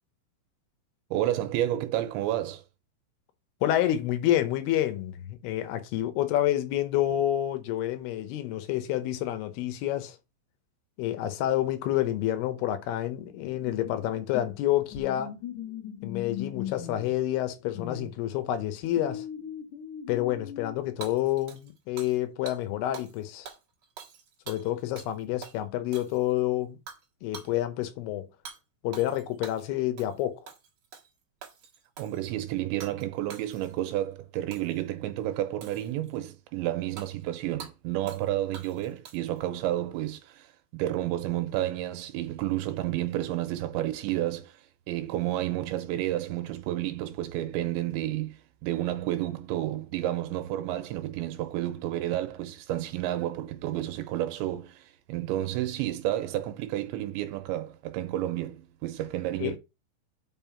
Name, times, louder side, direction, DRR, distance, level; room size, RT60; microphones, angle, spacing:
voice 1, 1.1-2.6 32.0-44.6 44.9-59.6, right 14 dB, 85° right, 3.0 m, -31 dB
voice 2, 3.6-10.2 11.0-15.3 16.0-19.3 20.1-23.5 24.5-26.8 27.2-28.3 28.8-30.5 59.4-59.6, left 13 dB, 75° left, 2.5 m, -28 dB
sound 1, 13.1-14.6 14.9-17.2 17.7-18.1 18.9-20.8, left 9 dB, 60° left, 2.3 m, -39 dB
Hammer / Shatter, 21.0-22.2 22.5-22.6 22.9-23.2 23.4-25.1 25.4-25.6 25.9-26.4 26.9-27.0 27.3-27.5 28.4-28.6 28.9-29.7 30.0-30.2 30.5-31.1 31.4-32.2 32.8-33.0 33.3-33.9 34.5-34.8 35.6-36.2 37.0-37.1 37.6-37.7 38.1-38.3 38.5-39.4, right 7 dB, 70° right, 1.6 m, -45 dB
5.7 x 5.5 x 5.6 m
omnidirectional pair, 5.4 m